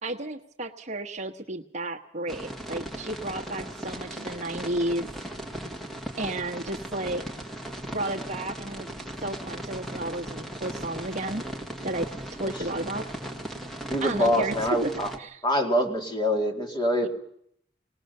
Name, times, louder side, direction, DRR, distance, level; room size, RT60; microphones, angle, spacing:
voice 1, 0.0-5.1 6.2-7.2 7.9-8.9 9.2-11.4 11.8-12.1 12.4-13.1 14.0-14.9 15.2-15.4 17.0-17.1, right 1 dB, 40° right, 2 dB, 1.2 m, -32 dB
sound 1, 2.3-15.2, right 1 dB, ahead, 1.6 m, -37 dB
voice 2, 13.9-15.1 15.4-17.1, equal, 25° left, 2 dB, 2.3 m, -25 dB
21.0 x 19.0 x 6.7 m, 0.70 s
head